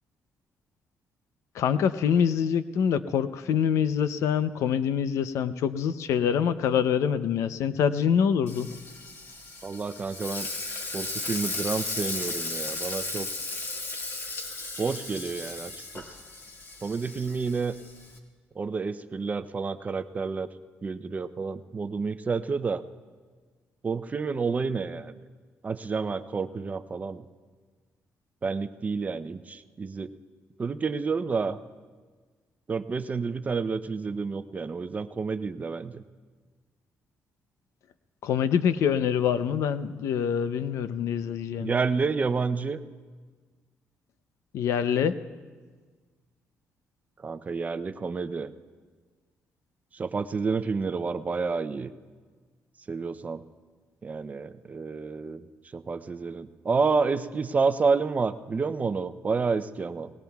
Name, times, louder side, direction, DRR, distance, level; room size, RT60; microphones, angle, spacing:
voice 1, 1.5-8.7 38.2-41.7 44.5-45.2, left 8 dB, 80° left, 13 dB, 0.6 m, -25 dB
Frying (food), 8.5-18.2, left 2 dB, 50° left, 1.9 m, -35 dB
voice 2, 9.6-10.5 10.9-13.3 14.8-16.0 16.8-17.7 18.6-20.5 20.8-22.8 23.8-25.1 25.6-27.2 28.4-30.1 30.6-31.6 32.7-36.0 41.6-42.8 47.2-48.5 49.9-51.9 52.9-53.4 54.0-55.5 55.7-60.1, right 4 dB, 30° right, 11 dB, 0.6 m, -29 dB
25.0 x 19.5 x 2.3 m, 1.5 s
cardioid pair, 105°, 5 cm